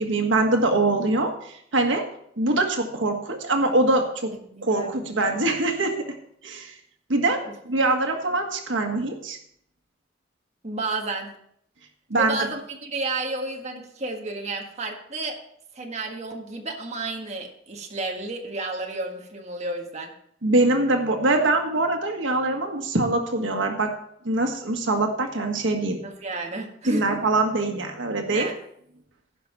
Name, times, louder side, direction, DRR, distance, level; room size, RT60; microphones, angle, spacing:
voice 1, 0.0-2.0 2.4-4.3 4.6-6.0 6.4-6.7 7.1-9.4 12.1-12.5 20.4-23.9 24.2-26.0 26.8-28.5, right 2 dB, 90° right, 3 dB, 1.5 m, -23 dB
voice 2, 4.5-4.9 7.4-7.5 10.6-11.4 12.1-15.4 15.7-20.1 26.0-27.2 28.3-28.5, right 2 dB, 35° right, 1 dB, 1.6 m, -31 dB
16.0 x 5.6 x 4.7 m, 0.69 s
head